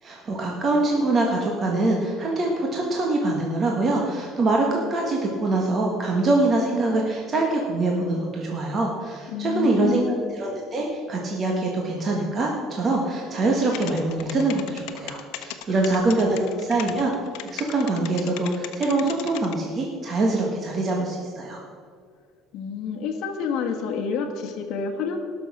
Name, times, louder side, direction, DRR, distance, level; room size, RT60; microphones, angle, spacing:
voice 1, 0.0-10.0 10.3-17.1 17.4-21.6, right 2 dB, 25° right, -1 dB, 1.4 m, -24 dB
voice 2, 9.3-10.2 15.7-15.9 16.3-16.6 22.5-25.2, left 6 dB, 55° left, 4 dB, 1.4 m, -29 dB
sound 1, 13.7-19.5, left 14 dB, 75° left, 1.0 m, -36 dB
18.0 x 6.4 x 6.0 m, 2.1 s
cardioid pair, 170°, 0 cm